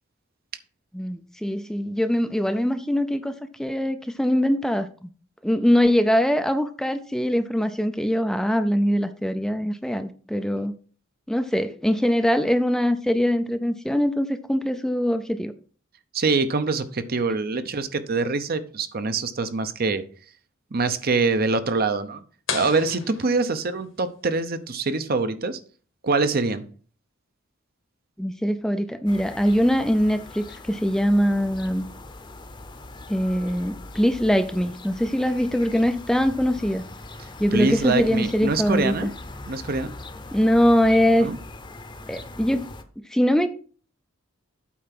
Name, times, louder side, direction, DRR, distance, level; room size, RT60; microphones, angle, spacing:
voice 1, 0.9-4.9 5.4-10.7 11.3-15.5 28.2-31.8 33.1-36.8 37.4-39.1 40.3-41.3 42.1-42.7 43.1-43.5, equal, 5° left, 0.4 m, -22 dB
voice 2, 16.1-20.0 20.7-22.2 22.5-25.6 26.0-26.6 37.5-39.1 39.5-39.9 41.2-41.4, right 3 dB, 50° right, 0.8 m, -24 dB
sound 1, 22.5-24.1, left 6 dB, 85° left, 2.0 m, -34 dB
sound 2, 29.1-42.8, left 2 dB, 25° left, 0.8 m, -41 dB
8.4 x 4.5 x 5.9 m
head